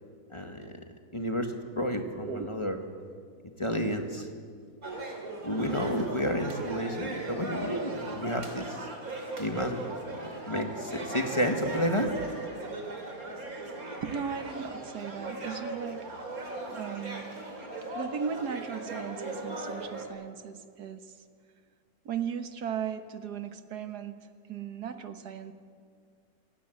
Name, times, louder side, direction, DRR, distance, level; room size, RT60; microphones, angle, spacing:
voice 1, 0.3-0.7 1.1-2.8 3.6-4.3 5.4-8.9 9.4-12.1, equal, 20° left, 4 dB, 1.7 m, -31 dB
sound 1, 4.8-20.1, right 2 dB, 65° right, 3.4 m, -38 dB
voice 2, 14.0-16.1 16.7-17.3 18.0-21.2 22.1-25.5, right 7 dB, 85° right, 8 dB, 1.8 m, -37 dB
28.5 x 16.5 x 7.9 m, 2.1 s
omnidirectional pair, 1.6 m